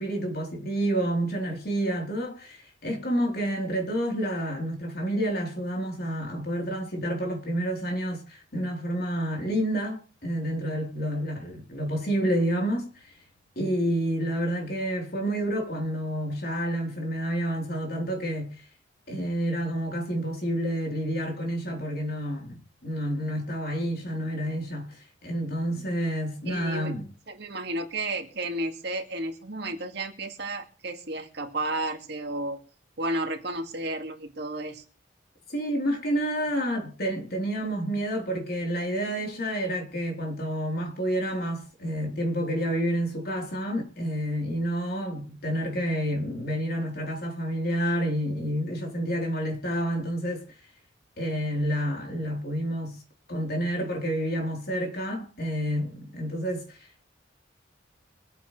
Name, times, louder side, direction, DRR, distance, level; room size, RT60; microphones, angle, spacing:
voice 1, 0.0-13.0 13.6-18.6 19.1-27.0 35.5-50.4 51.2-53.0 53.3-57.1, equal, 55° left, 3.8 m, -29 dB
voice 2, 26.5-26.9 27.3-32.6 33.0-34.8, right 2 dB, 60° right, 2.2 m, -32 dB
25.0 x 8.9 x 3.3 m
head